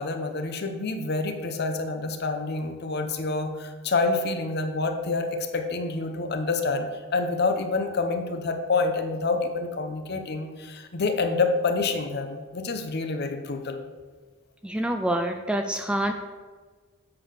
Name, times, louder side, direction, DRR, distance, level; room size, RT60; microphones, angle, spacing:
voice 1, 0.0-13.8, left 3 dB, 50° left, 6 dB, 0.8 m, -27 dB
voice 2, 14.6-16.1, right 1 dB, 5° right, 5 dB, 0.3 m, -26 dB
7.7 x 3.9 x 6.5 m, 1.4 s
head